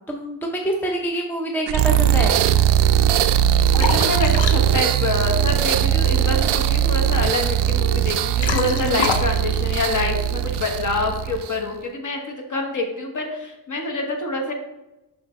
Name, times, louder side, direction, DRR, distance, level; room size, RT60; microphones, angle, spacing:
voice 1, 0.1-2.4, right 1 dB, 5° left, 1 dB, 0.5 m, -26 dB
sound 1, 1.7-11.7, right 10 dB, 70° right, 0.5 m, -20 dB
Liquid, 2.9-10.7, left 6 dB, 75° left, 0.7 m, -30 dB
voice 2, 3.8-14.5, left 2 dB, 40° left, 3 dB, 1.2 m, -26 dB
6.9 x 5.6 x 3.1 m, 0.97 s
wide cardioid pair, 140°, 44 cm